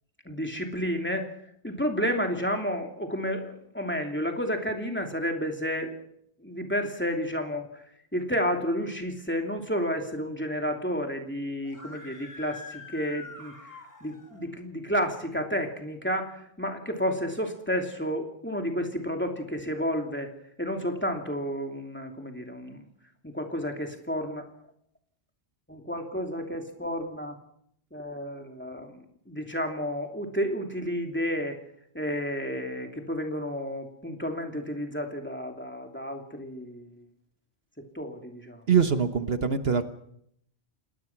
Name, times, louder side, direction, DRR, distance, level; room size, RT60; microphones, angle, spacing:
voice 1, 0.2-1.3 1.6-5.9 6.4-7.7 8.1-13.6 14.0-20.3 20.6-22.9 23.2-24.4 25.7-27.3 27.9-31.6 31.9-37.0 37.8-38.6, equal, 10° left, 3 dB, 2.8 m, -31 dB
Screaming, 11.6-14.4, left 4 dB, 60° left, 4.6 m, -45 dB
voice 2, 38.7-39.9, right 6 dB, 65° right, 9 dB, 1.4 m, -23 dB
28.0 x 19.5 x 6.0 m, 0.72 s
omnidirectional pair, 1.1 m